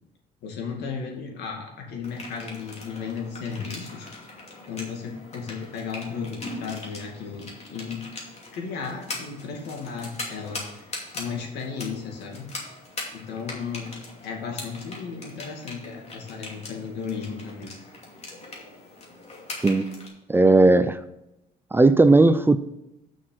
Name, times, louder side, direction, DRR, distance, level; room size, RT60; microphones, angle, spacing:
voice 1, 0.4-4.1 4.7-8.0 8.5-12.5 13.1-13.9 14.2-17.7, left 5 dB, 80° left, 2 dB, 2.4 m, -35 dB
sound 1, 2.0-20.1, left 2 dB, 40° left, 2.6 m, -40 dB
voice 2, 20.3-21.0 21.7-22.6, right 2 dB, 15° right, 12 dB, 0.4 m, -16 dB
6.4 x 6.2 x 7.5 m, 0.89 s
cardioid pair, 110°, 17 cm